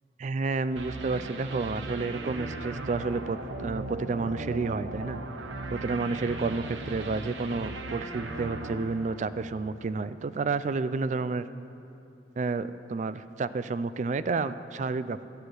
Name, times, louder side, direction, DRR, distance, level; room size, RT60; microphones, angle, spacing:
voice 1, 0.2-5.2 5.7-11.5 12.4-15.2, right 4 dB, 40° right, 14 dB, 0.3 m, -30 dB
sound 1, 0.8-9.8, right 2 dB, 85° right, 0.8 m, -38 dB
13.5 x 8.2 x 6.3 m, 2.8 s
head